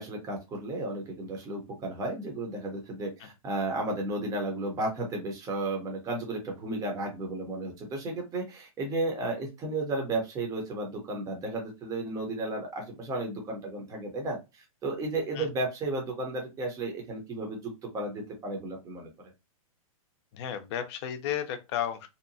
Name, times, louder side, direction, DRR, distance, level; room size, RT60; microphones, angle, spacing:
voice 1, 0.0-19.1, right 2 dB, 20° right, 0.8 m, -33 dB
voice 2, 20.3-22.1, left 10 dB, 45° left, 0.6 m, -33 dB
2.8 x 2.1 x 2.7 m
hypercardioid pair, 140°, 19 cm